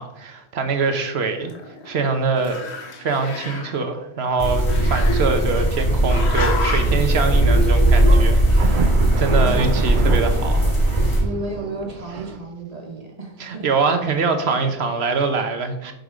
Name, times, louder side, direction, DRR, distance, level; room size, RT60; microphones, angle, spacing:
voice 1, 0.0-1.5 1.8-2.6 3.0-8.9 9.2-10.7 13.4-15.9, right 4 dB, 80° right, 7 dB, 1.2 m, -23 dB
Growling, 0.9-2.1 2.4-3.8 4.7-5.7 6.1-7.0, left 4 dB, 85° left, 1.5 m, -31 dB
sound 1, 4.4-11.2, right 1 dB, 30° left, 2.2 m, -18 dB
sound 2, 8.0-12.4, right 6 dB, 55° right, 0.7 m, -30 dB
voice 2, 11.2-13.7, right 2 dB, 35° right, 2 dB, 1.5 m, -33 dB
7.9 x 4.0 x 5.0 m, 0.85 s
omnidirectional pair, 1.1 m